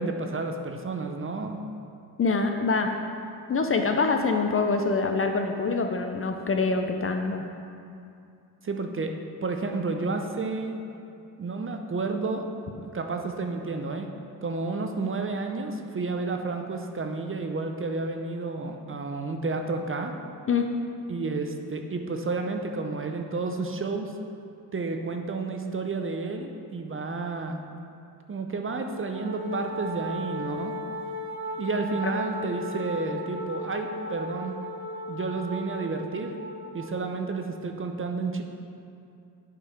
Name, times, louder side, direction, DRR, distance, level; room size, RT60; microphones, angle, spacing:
voice 1, 0.0-1.6 8.6-9.1 9.4-10.8 11.4-12.4 12.9-14.1 14.4-20.1 21.1-24.2 24.7-27.6 28.3-30.8 31.6-34.5 35.1-36.4 36.7-38.4, right 3 dB, 30° right, 4 dB, 0.6 m, -31 dB
voice 2, 2.2-2.9 3.5-7.4 20.5-20.7 32.0-32.1, left 4 dB, 30° left, 4 dB, 0.5 m, -25 dB
Wind instrument woodwind instrument, 29.1-37.1, left 1 dB, 55° right, 1.2 m, -36 dB
8.1 x 3.7 x 4.5 m, 2.5 s
supercardioid pair, 60°, 44 cm